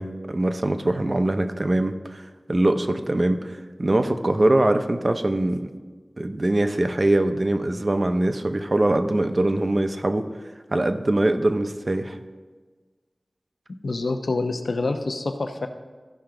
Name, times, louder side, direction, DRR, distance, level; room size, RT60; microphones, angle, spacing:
voice 1, 0.0-2.2 2.5-3.4 3.8-5.7 6.2-10.3 10.7-12.2, right 1 dB, 45° right, 8 dB, 0.7 m, -22 dB
voice 2, 13.8-15.7, left 3 dB, 80° left, 6 dB, 0.7 m, -26 dB
14.5 x 5.8 x 3.8 m, 1.4 s
wide cardioid pair, 50°, 0 cm